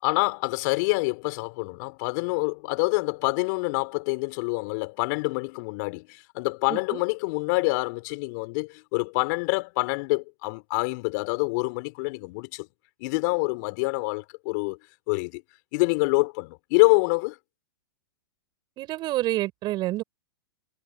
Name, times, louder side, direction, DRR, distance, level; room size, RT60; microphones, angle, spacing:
voice 1, 0.0-12.7 13.0-14.8 15.1-15.4 15.7-17.4, left 29 dB, 50° left, 3.8 m, -26 dB
voice 2, 6.7-7.0 18.8-20.0, right 16 dB, 35° right, 7.3 m, -28 dB
hypercardioid pair, 115°, 12 cm